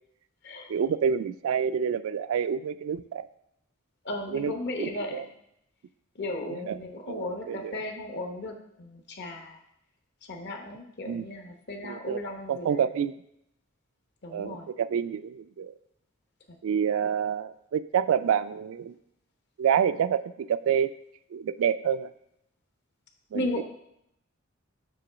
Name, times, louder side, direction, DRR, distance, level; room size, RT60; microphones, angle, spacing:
voice 1, 0.7-3.3 4.3-4.5 4.8-5.3 6.6-6.8 7.1-7.8 11.1-11.3 11.8-12.2 12.5-13.1 14.3-15.7 16.6-18.9 19.6-20.9 21.3-22.1 23.3-23.6, right 8 dB, 70° right, 14 dB, 0.3 m, -28 dB
voice 2, 4.0-5.2 6.1-9.6 10.3-12.9 14.2-14.7 23.3-23.6, left 1 dB, 55° left, 3 dB, 0.9 m, -35 dB
6.9 x 3.0 x 6.0 m, 0.77 s
head